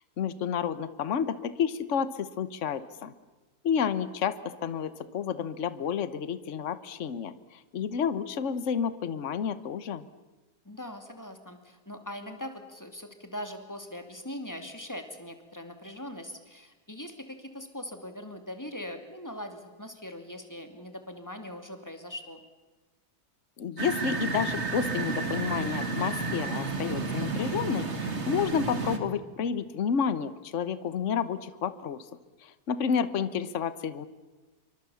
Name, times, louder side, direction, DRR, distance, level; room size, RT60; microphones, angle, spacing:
voice 1, 0.2-3.1 3.6-10.1 23.6-32.0 32.4-34.1, left 7 dB, 50° left, 14 dB, 1.3 m, -30 dB
voice 2, 10.6-22.4, left 1 dB, 10° left, 6 dB, 2.5 m, -41 dB
sound 1, 23.8-29.0, right 4 dB, 45° right, 2.3 m, -31 dB
27.5 x 24.0 x 7.1 m, 1.2 s
omnidirectional pair, 1.7 m